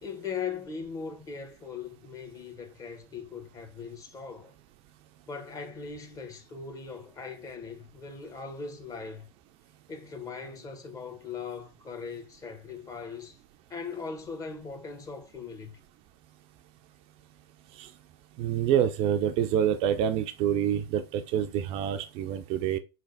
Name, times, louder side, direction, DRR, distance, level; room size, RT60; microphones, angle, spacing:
voice 1, 0.0-4.5 5.3-9.3 9.9-13.4 13.7-15.7, left 5 dB, 25° left, 0.8 m, -39 dB
voice 2, 18.4-22.8, right 9 dB, 45° right, 0.4 m, -27 dB
3.8 x 3.3 x 2.5 m
hypercardioid pair, 95°, 14 cm